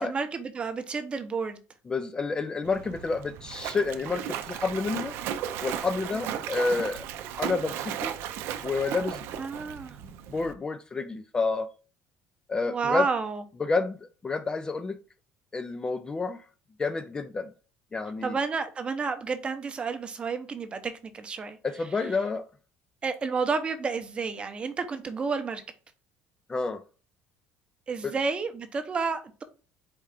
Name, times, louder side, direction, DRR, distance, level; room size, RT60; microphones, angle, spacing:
voice 1, 0.0-1.6 6.3-6.4 9.4-10.0 12.7-13.4 18.2-21.6 23.0-25.6 27.9-29.4, right 4 dB, 25° right, 0.6 m, -30 dB
voice 2, 1.9-5.2 5.6-7.0 7.4-8.1 8.6-9.3 10.3-11.7 12.5-13.1 13.6-15.0 15.5-16.4 16.8-17.5 17.9-18.3 21.6-22.5 26.5-26.8 28.0-28.1, left 4 dB, 20° left, 0.3 m, -29 dB
Splash splatter, 2.6-10.5, right 9 dB, 70° right, 0.5 m, -35 dB
4.4 x 2.4 x 4.8 m
cardioid pair, 130°, 4 cm